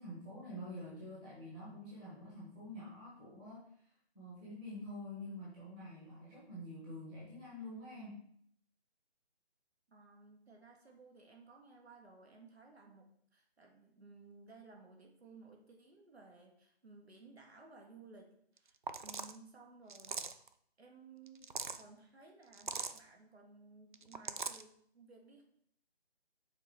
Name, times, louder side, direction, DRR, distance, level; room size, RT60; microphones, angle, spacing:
voice 1, 0.0-3.6 4.1-8.2, left 1 dB, 10° right, -8 dB, 1.2 m, -47 dB
voice 2, 9.9-20.4 20.8-25.4, right 3 dB, 70° right, 1 dB, 2.0 m, -58 dB
sound 1, 18.6-18.7 18.9-19.4 19.9-20.5 21.3-21.8 22.5-23.0 23.9-24.6, right 5 dB, 50° right, 0.5 m, -41 dB
6.9 x 4.1 x 4.7 m, 0.67 s
figure-of-eight pair, 165°, 33 cm